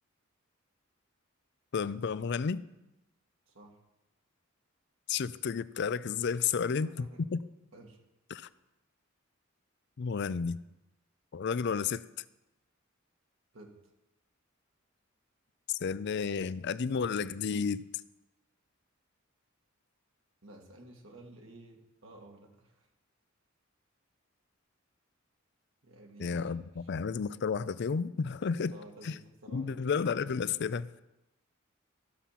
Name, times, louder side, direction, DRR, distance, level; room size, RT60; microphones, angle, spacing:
voice 1, 1.7-2.6 5.1-7.4 8.3-8.5 10.0-10.6 11.3-12.0 15.7-17.8 26.2-28.8 29.0-29.1 29.5-31.0, left 6 dB, 55° left, 0.4 m, -32 dB
voice 2, 3.5-3.8 6.3-7.3 7.7-8.0 13.5-13.7 20.4-22.9 25.8-26.9 28.7-29.9, right 1 dB, 70° right, 2.0 m, -53 dB
14.0 x 7.1 x 5.8 m
head